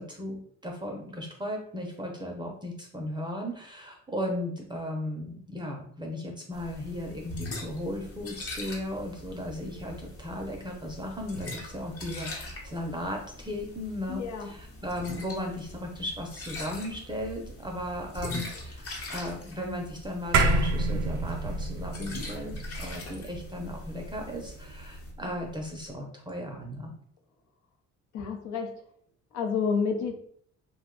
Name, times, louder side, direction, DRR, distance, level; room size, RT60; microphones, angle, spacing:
voice 1, 0.0-26.9, left 1 dB, 15° right, 0 dB, 0.5 m, -36 dB
sound 1, 6.5-25.1, left 1 dB, 50° left, 0.9 m, -42 dB
voice 2, 14.1-14.5 28.1-28.7 29.3-30.1, left 5 dB, 75° left, 4 dB, 0.7 m, -29 dB
sound 2, 20.3-25.0, right 3 dB, 75° right, 0.5 m, -28 dB
2.5 x 2.2 x 3.7 m, 0.62 s
cardioid pair, 90°, 30 cm